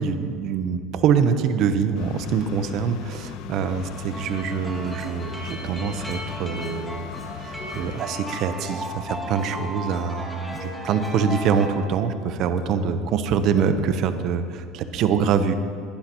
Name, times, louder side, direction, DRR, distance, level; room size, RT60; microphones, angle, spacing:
voice 1, 0.0-7.1 7.4-15.5, right 6 dB, 55° right, 10 dB, 0.8 m, -24 dB
sound 1, 1.9-8.0, left 8 dB, 65° left, 0.5 m, -39 dB
sound 2, 3.6-11.7, equal, ahead, 1.5 m, -36 dB
sound 3, 6.6-7.0 7.6-8.0 8.6-8.9 9.6-9.9 10.6-10.9 11.6-11.9 12.6-12.8 13.6-13.8, left 3 dB, 25° left, 2.1 m, -43 dB
19.0 x 11.5 x 3.0 m, 2.2 s
supercardioid pair, 125°, 0 cm